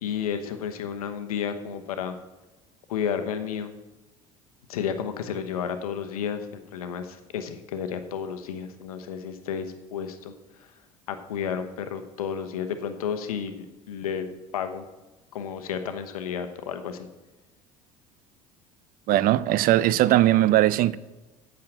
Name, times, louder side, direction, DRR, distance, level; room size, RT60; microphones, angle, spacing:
voice 1, 0.0-2.2 2.9-3.7 4.7-10.3 11.1-14.3 14.5-14.9 15.3-17.1, left 7 dB, 85° left, 8 dB, 1.0 m, -32 dB
voice 2, 19.1-21.0, right 14 dB, 50° right, 19 dB, 0.5 m, -19 dB
8.6 x 6.5 x 7.7 m, 1.1 s
hypercardioid pair, 70°, 18 cm